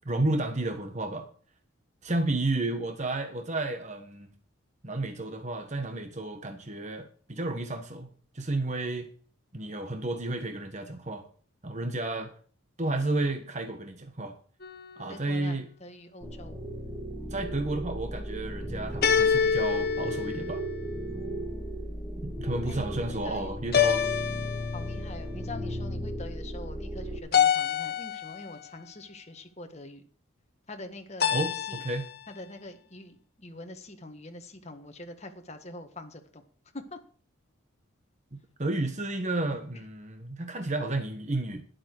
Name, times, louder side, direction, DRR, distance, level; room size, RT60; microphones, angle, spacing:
voice 1, 0.0-1.2 2.0-4.3 4.8-8.1 8.3-9.1 9.5-11.2 11.6-12.3 12.8-14.3 15.0-15.7 17.3-20.6 22.2-24.1 31.3-32.1 38.3-41.8, right 2 dB, 35° right, 6 dB, 1.3 m, -32 dB
sound 1, 14.6-15.3 19.0-21.0 23.7-25.1 27.3-28.5 31.2-32.2, left 7 dB, 45° left, 1.1 m, -27 dB
voice 2, 15.1-16.6 21.1-21.9 22.6-23.6 24.7-30.1 30.7-31.8 32.3-36.4 36.7-37.0 39.7-39.8, left 2 dB, 30° left, 5 dB, 1.6 m, -44 dB
sound 2, 16.2-27.2, equal, 5° right, 1.9 m, -36 dB
12.0 x 11.0 x 4.7 m, 0.43 s
head